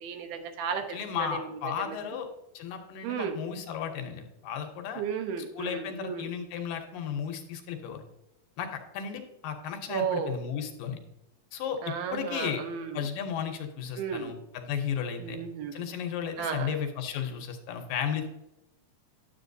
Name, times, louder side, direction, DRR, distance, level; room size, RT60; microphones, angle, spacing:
voice 1, 0.0-1.6 1.9-2.0 3.0-3.4 5.0-6.3 9.9-10.4 11.8-13.1 14.0-14.3 15.2-15.9 16.4-16.7, right 7 dB, 85° right, 6 dB, 2.6 m, -34 dB
voice 2, 0.9-2.3 2.5-5.0 5.6-8.0 8.6-11.0 11.5-12.6 12.9-15.4 15.7-18.3, left 8 dB, 75° left, 5 dB, 2.4 m, -34 dB
10.0 x 7.7 x 2.6 m, 0.90 s
omnidirectional pair, 4.2 m